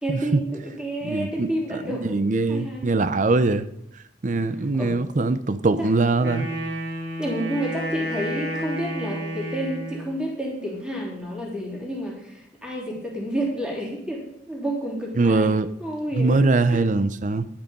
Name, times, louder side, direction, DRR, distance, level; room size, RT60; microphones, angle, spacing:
voice 1, 0.0-2.2 2.5-3.0 4.8-5.0 5.8-5.9 6.2-6.6 7.2-15.5 15.8-16.9, right 1 dB, 5° right, 3.4 m, -30 dB
voice 2, 1.0-3.7 4.2-6.5 15.2-15.7 16.2-17.5, right 3 dB, 45° right, 0.6 m, -22 dB
Wind instrument woodwind instrument, 6.2-10.2, equal, 75° right, 2.8 m, -31 dB
11.5 x 8.9 x 5.4 m
head